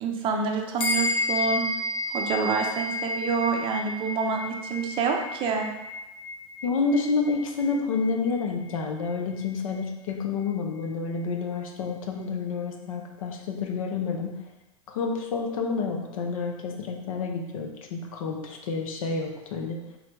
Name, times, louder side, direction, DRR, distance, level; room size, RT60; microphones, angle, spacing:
voice 1, 0.0-1.6 2.1-5.7, right 5 dB, 30° right, 2 dB, 0.5 m, -27 dB
sound 1, 0.8-10.5, left 2 dB, 30° left, 0.8 m, -33 dB
voice 2, 6.6-14.3 14.9-19.8, left 4 dB, 75° left, 3 dB, 0.7 m, -29 dB
3.9 x 2.1 x 4.4 m, 1.0 s
hypercardioid pair, 130°, 18 cm